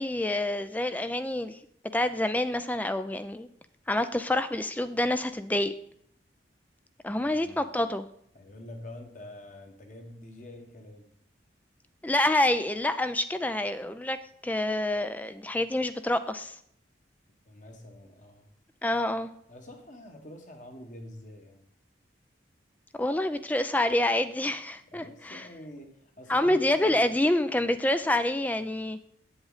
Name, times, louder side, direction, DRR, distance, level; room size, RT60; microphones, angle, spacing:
voice 1, 0.0-1.6 1.9-3.5 3.9-5.7 7.0-8.1 12.0-14.2 14.4-16.6 18.8-19.3 23.0-25.5 26.3-29.0, left 1 dB, 10° left, 11 dB, 0.3 m, -27 dB
voice 2, 7.2-7.6 8.3-11.1 17.4-18.5 19.5-21.6 24.9-27.1, left 1 dB, 45° left, 3 dB, 1.4 m, -46 dB
8.5 x 7.9 x 4.0 m, 0.68 s
head